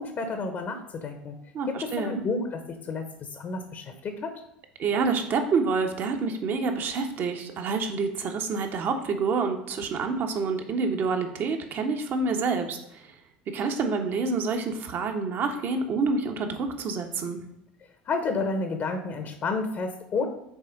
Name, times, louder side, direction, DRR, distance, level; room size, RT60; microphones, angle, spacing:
voice 1, 0.0-1.4 1.7-4.4 18.0-20.3, left 3 dB, 45° left, 7 dB, 1.0 m, -31 dB
voice 2, 1.5-2.2 4.8-13.1 13.5-17.4, right 4 dB, 45° right, 5 dB, 1.1 m, -28 dB
6.1 x 4.3 x 5.3 m, 0.82 s
hypercardioid pair, 75°, 5 cm